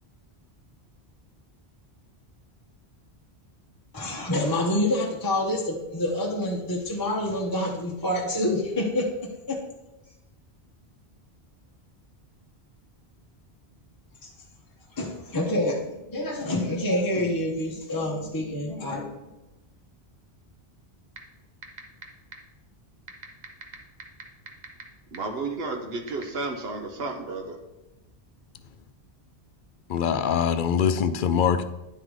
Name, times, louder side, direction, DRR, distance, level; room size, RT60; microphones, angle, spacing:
voice 1, 3.9-9.6 14.2-14.3 15.0-19.2, left 1 dB, 20° left, 0.8 m, -27 dB
sound 1, 21.2-21.3 21.6-22.0 22.3-22.4 23.1-24.8 25.1-25.2 26.1-26.2, right 5 dB, 45° right, 1.0 m, -38 dB
voice 2, 25.1-27.6, right 3 dB, 70° right, 1.1 m, -32 dB
voice 3, 29.9-31.6, left 7 dB, 60° left, 0.6 m, -23 dB
10.0 x 3.8 x 4.8 m
omnidirectional pair, 1.1 m